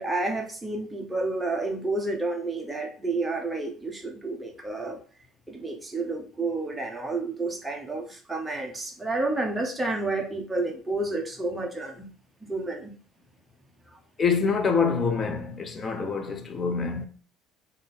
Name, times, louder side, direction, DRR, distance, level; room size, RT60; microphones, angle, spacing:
voice 1, 0.0-5.0 5.5-12.1 12.4-12.9 13.9-14.0, right 2 dB, 10° right, 0.8 m, -30 dB
voice 2, 14.2-17.1, left 5 dB, 25° left, 0.6 m, -26 dB
3.6 x 2.6 x 4.1 m
cardioid pair, 130°, 0 cm